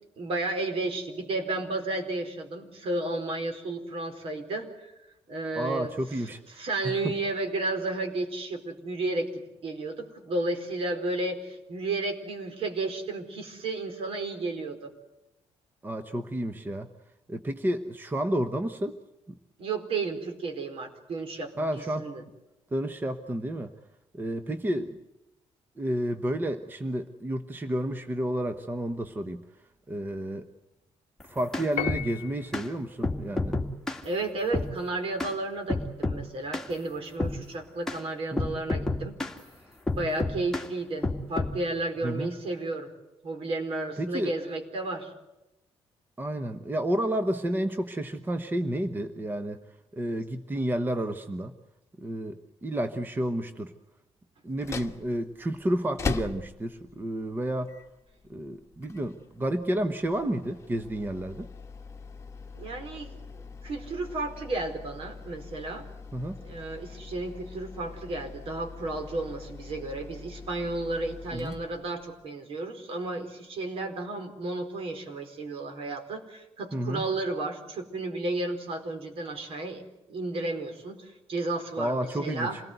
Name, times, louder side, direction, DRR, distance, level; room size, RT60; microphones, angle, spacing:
voice 1, 0.2-4.9 5.3-5.9 6.5-14.9 19.6-22.2 34.0-39.2 39.9-42.9 43.2-45.1 62.6-63.2 63.6-65.9 66.4-82.6, right 2 dB, 60° right, 6 dB, 4.3 m, -33 dB
voice 2, 5.6-7.1 15.8-16.9 17.3-19.0 19.3-19.4 21.6-22.1 22.7-23.7 24.1-25.0 25.8-29.4 29.9-30.5 31.3-33.6 38.3-38.5 42.0-42.4 44.0-44.3 46.2-49.6 49.9-51.5 52.0-53.7 54.4-57.8 58.3-61.5 66.1-66.4 71.3-71.6 76.7-77.0 81.8-82.5, right 1 dB, 20° right, 9 dB, 1.1 m, -31 dB
sound 1, 31.2-32.1 32.5-32.7 33.0-34.0 34.5-34.7 35.2-35.4 35.7-36.2 36.5-36.7 37.2-37.4 37.9-38.0 38.4-39.4 39.9-40.7 41.0-41.6, left 2 dB, 5° left, 2.4 m, -29 dB
Piano, 31.8-32.7, left 11 dB, 80° left, 0.8 m, -34 dB
sound 2, 54.5-72.3, left 5 dB, 25° left, 1.3 m, -42 dB
27.0 x 19.0 x 8.1 m, 0.98 s
cardioid pair, 125°, 11 cm